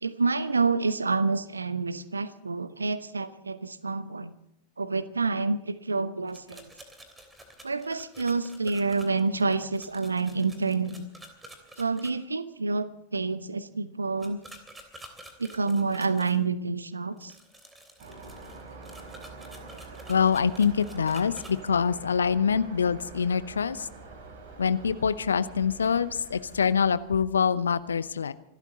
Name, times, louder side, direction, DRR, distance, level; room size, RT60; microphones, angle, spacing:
voice 1, 0.0-4.3 4.8-6.7 7.6-11.1 11.8-14.4 15.4-17.3, right 4 dB, 80° right, 15 dB, 1.0 m, -28 dB
sound 1, 6.3-12.1 14.2-16.4 17.2-21.5, right 1 dB, 10° right, 3.2 m, -49 dB
sound 2, 18.0-27.2, right 3 dB, 50° right, 5.0 m, -46 dB
voice 2, 20.1-23.9 24.6-28.3, left 6 dB, 70° left, 15 dB, 0.8 m, -25 dB
26.0 x 13.0 x 4.0 m, 0.78 s
figure-of-eight pair, 90°, 0 cm